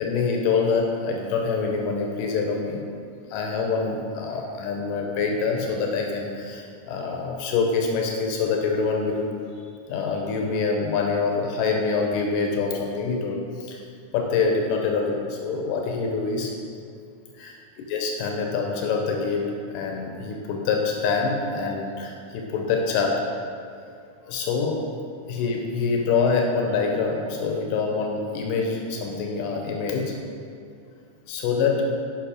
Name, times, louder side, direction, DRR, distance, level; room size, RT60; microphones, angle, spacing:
voice 1, 0.0-2.8 3.3-9.3 9.9-13.8 14.1-16.5 17.4-17.6 17.9-19.4 19.7-23.2 24.3-24.8 25.3-30.1 31.3-31.8, left 4 dB, 90° left, 1 dB, 2.4 m, -25 dB
7.3 x 5.4 x 4.9 m, 2.4 s
omnidirectional pair, 3.7 m